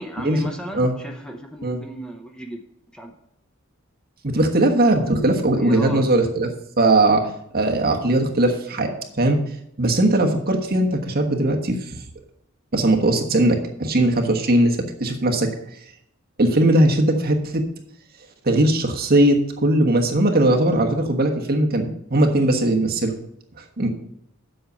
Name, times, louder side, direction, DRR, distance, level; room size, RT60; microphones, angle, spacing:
voice 1, 0.0-2.6 2.9-3.1 5.5-6.2, equal, 5° left, 3 dB, 0.7 m, -35 dB
voice 2, 4.2-6.5 6.8-8.9 9.2-9.4 9.8-11.8 12.7-15.5 16.4-17.6 18.4-23.1 23.8-23.9, right 1 dB, 45° right, 2 dB, 1.3 m, -19 dB
7.8 x 6.6 x 6.9 m, 0.77 s
head